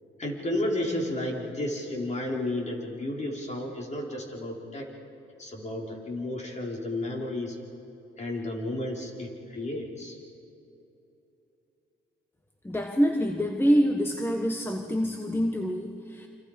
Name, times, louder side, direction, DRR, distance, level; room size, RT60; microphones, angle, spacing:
voice 1, 0.2-4.9 5.4-7.6 8.2-10.2, left 1 dB, 35° left, -1 dB, 5.0 m, -32 dB
voice 2, 12.6-16.3, equal, 10° left, 4 dB, 1.5 m, -26 dB
29.0 x 26.0 x 5.3 m, 2.9 s
cardioid pair, 90°, 20 cm